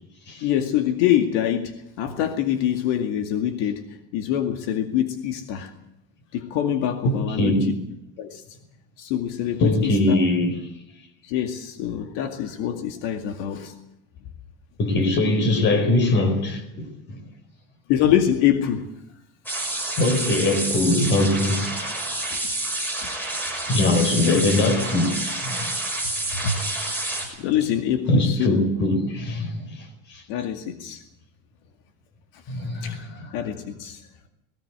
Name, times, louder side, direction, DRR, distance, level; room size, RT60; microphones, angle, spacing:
voice 1, 0.4-5.7 6.3-7.7 8.2-8.4 9.0-10.2 11.2-13.7 17.9-18.9 21.8-21.9 22.3-22.4 24.1-24.5 26.3-26.6 27.4-28.7 30.3-31.0 32.8-33.0 33.3-34.0, left 10 dB, 80° left, 2.2 m, -25 dB
voice 2, 7.0-7.7 9.6-10.6 14.8-17.2 20.0-21.7 23.7-25.7 28.1-29.7 30.1-30.2 32.5-33.4, left 2 dB, 35° left, 4.3 m, -22 dB
sound 1, 19.5-27.3, right 2 dB, 5° left, 5.9 m, -28 dB
19.0 x 17.5 x 8.1 m
cardioid pair, 165°, 32 cm